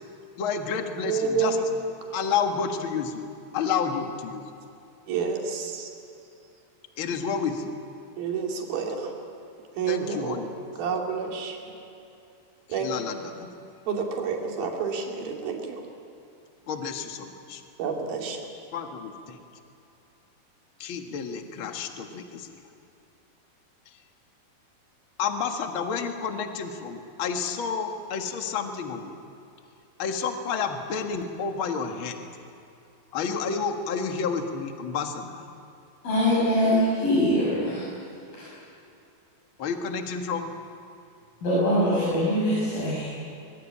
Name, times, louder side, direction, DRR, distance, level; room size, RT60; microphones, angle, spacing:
voice 1, 0.4-1.6 2.1-3.2 3.5-4.4 7.0-7.7 9.9-10.5 12.7-13.5 16.7-17.6 18.7-19.4 20.8-22.5 25.2-29.1 30.0-32.3 33.1-35.4 39.6-40.6, left 6 dB, 45° left, 4 dB, 1.8 m, -30 dB
voice 2, 1.1-1.6 5.1-5.9 8.2-9.1 9.8-10.4 10.8-11.7 12.7-12.9 13.9-15.8 17.8-18.4, right 6 dB, 75° right, 1 dB, 4.5 m, -29 dB
voice 3, 36.0-37.9 38.3-38.5 41.4-43.1, equal, 65° left, -9 dB, 8.6 m, -23 dB
24.0 x 21.5 x 8.6 m, 2.7 s
omnidirectional pair, 4.3 m